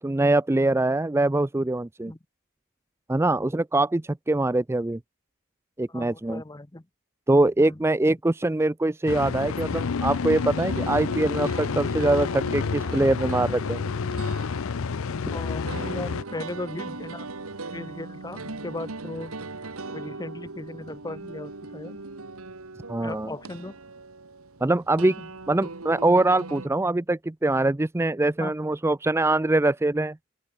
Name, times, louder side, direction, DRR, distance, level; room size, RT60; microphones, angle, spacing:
voice 1, 0.0-2.1 3.1-5.0 5.8-6.4 7.3-13.8 15.3-15.4 22.9-23.3 24.6-25.2 25.5-30.2, right 2 dB, 10° right, 0.4 m, -23 dB
voice 2, 5.9-6.8 7.6-7.8 15.3-17.3 17.7-19.4 19.9-22.0 23.0-23.8 24.9-25.3 28.4-28.5, left 2 dB, 20° left, 0.8 m, -37 dB
sound 1, 9.1-16.2, left 5 dB, 65° left, 0.5 m, -29 dB
sound 2, 10.3-26.7, right 3 dB, 75° right, 1.7 m, -40 dB
open air
head